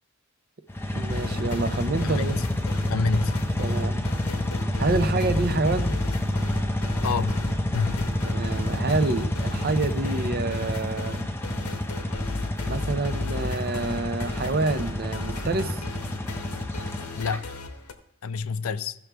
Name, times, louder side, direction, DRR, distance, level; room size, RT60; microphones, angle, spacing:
sound 1, 0.7-17.4, left 1 dB, 10° left, 0.5 m, -28 dB
voice 1, 0.9-2.4 3.6-4.0 4.8-6.0 8.3-11.2 12.7-15.8, right 3 dB, 45° right, 0.5 m, -27 dB
sound 2, 1.1-17.9, left 3 dB, 85° left, 0.9 m, -37 dB
voice 2, 2.0-2.5 2.9-3.4 7.0-7.3 7.7-8.0 17.2-17.5 18.2-19.0, left 5 dB, 70° left, 0.4 m, -28 dB
15.5 x 6.1 x 3.4 m
head